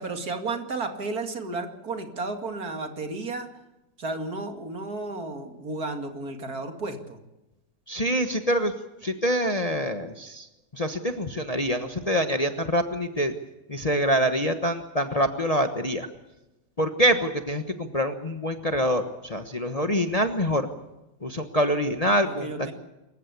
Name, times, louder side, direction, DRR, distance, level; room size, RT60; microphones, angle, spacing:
voice 1, 0.0-3.5 4.0-7.2 22.2-22.7, right 3 dB, 60° right, 5 dB, 2.8 m, -33 dB
voice 2, 7.9-8.7 9.0-10.5 10.7-13.3 13.7-16.1 16.8-20.7 21.2-22.5, equal, 25° left, 7 dB, 1.2 m, -25 dB
27.0 x 15.0 x 8.3 m, 0.98 s
omnidirectional pair, 1.8 m